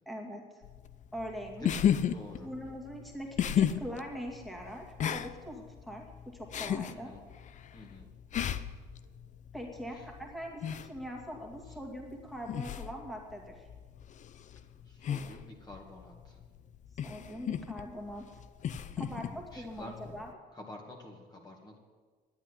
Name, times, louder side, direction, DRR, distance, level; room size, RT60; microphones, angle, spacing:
voice 1, 0.1-0.4 1.1-1.7 2.4-7.1 9.5-13.7 17.0-18.4 19.0-20.4, equal, ahead, 0 dB, 2.2 m, -42 dB
sound 1, 0.6-20.3, left 9 dB, 45° left, 0.6 m, -36 dB
voice 2, 1.6-2.5 6.9-7.2 7.7-8.2 9.9-10.0 11.7-11.8 14.8-16.4 19.1-20.2 20.5-21.8, left 1 dB, 25° left, 0 dB, 2.1 m, -48 dB
10.5 x 8.8 x 10.0 m, 1.5 s
cardioid pair, 110°, 17 cm